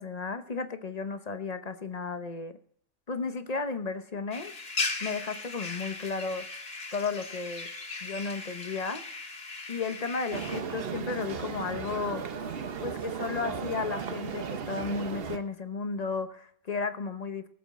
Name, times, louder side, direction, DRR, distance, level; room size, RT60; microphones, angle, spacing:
voice 1, 0.0-2.5 3.1-4.5 5.0-6.5 6.9-7.7 8.0-9.0 9.7-12.2 12.8-17.5, left 4 dB, 35° left, 9 dB, 0.9 m, -34 dB
sound 1, 4.3-10.6, left 3 dB, 55° left, 1.9 m, -37 dB
sound 2, 10.3-15.4, right 6 dB, 55° right, 1.1 m, -36 dB
18.0 x 7.8 x 4.2 m, 0.64 s
omnidirectional pair, 1.2 m